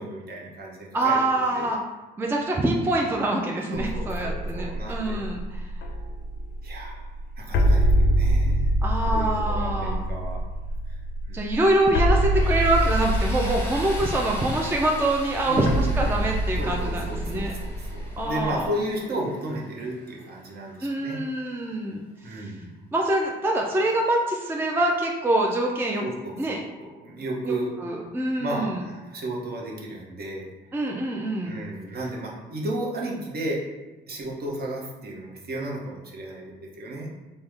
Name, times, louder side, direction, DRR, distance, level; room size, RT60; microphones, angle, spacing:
voice 1, 0.0-1.7 3.7-5.2 6.6-7.1 7.4-8.7 9.1-10.4 10.9-11.0 11.3-11.5 15.4-16.2 16.6-21.2 22.2-22.7 26.0-27.7 28.4-30.5 31.4-33.6 34.1-37.1, right 1 dB, 50° right, -2 dB, 0.8 m, -33 dB
voice 2, 0.9-1.8 2.2-5.7 8.8-10.0 11.3-17.5 18.2-18.7 20.8-22.5 22.9-26.0 26.4-26.6 27.5-27.6 27.8-28.8 30.7-31.6, right 1 dB, 10° right, 0 dB, 0.3 m, -25 dB
sound 1, 3.7-18.7, right 1 dB, 60° left, 0.4 m, -25 dB
Tools, 12.3-21.1, equal, 10° left, 0.9 m, -41 dB
3.4 x 2.1 x 3.2 m, 1.1 s
cardioid pair, 90°, 20 cm